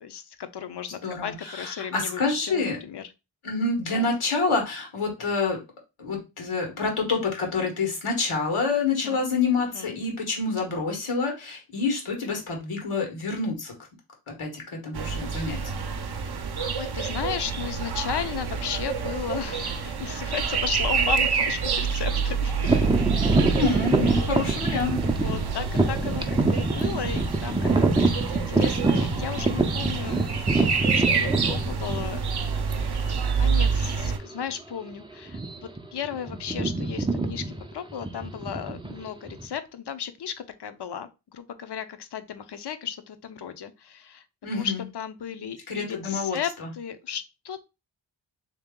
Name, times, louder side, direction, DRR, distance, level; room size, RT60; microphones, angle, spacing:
voice 1, 0.0-3.1 3.9-4.1 8.9-9.2 9.6-10.0 16.8-22.7 24.1-24.4 25.1-30.6 30.9-32.2 33.4-44.2 44.5-47.6, left 8 dB, 55° left, 11 dB, 0.6 m, -35 dB
voice 2, 1.0-2.8 3.4-5.6 6.0-13.7 14.3-15.6 23.5-24.9 44.4-44.8 45.7-46.7, left 4 dB, 90° left, 2 dB, 1.4 m, -27 dB
sound 1, 14.9-34.2, right 5 dB, 50° right, 0.6 m, -28 dB
sound 2, 22.6-32.4 33.1-33.2 33.8-34.1 34.3-34.6 35.2-35.8 36.0-39.5, right 3 dB, 10° right, 0.4 m, -25 dB
3.3 x 2.9 x 3.6 m, 0.26 s
wide cardioid pair, 80°, 49 cm